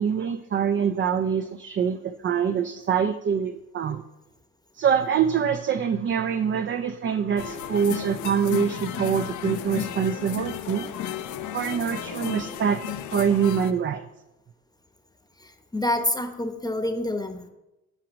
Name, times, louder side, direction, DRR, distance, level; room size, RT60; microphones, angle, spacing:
voice 1, 0.0-4.0 4.7-10.9 11.5-12.8 13.1-14.0, right 7 dB, 40° right, 9 dB, 0.5 m, -25 dB
sound 1, 7.4-13.7, left 10 dB, 75° left, 0.7 m, -34 dB
voice 2, 15.4-17.5, left 1 dB, 15° left, 6 dB, 0.9 m, -27 dB
9.0 x 4.9 x 6.2 m, 0.94 s
cardioid pair, 90°, 30 cm